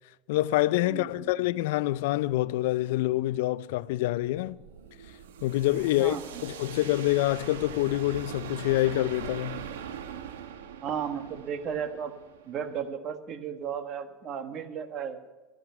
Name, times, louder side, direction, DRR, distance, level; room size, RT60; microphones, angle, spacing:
voice 1, 0.3-4.6 5.4-6.2 6.4-9.7, left 16 dB, 75° left, 0.4 m, -26 dB
voice 2, 0.9-1.3 6.0-6.2 10.8-12.1 12.4-15.2, right 7 dB, 50° right, 1.5 m, -34 dB
sound 1, 3.9-12.9, right 8 dB, 85° right, 1.0 m, -42 dB
12.5 x 12.5 x 5.9 m
hypercardioid pair, 90°, 0 cm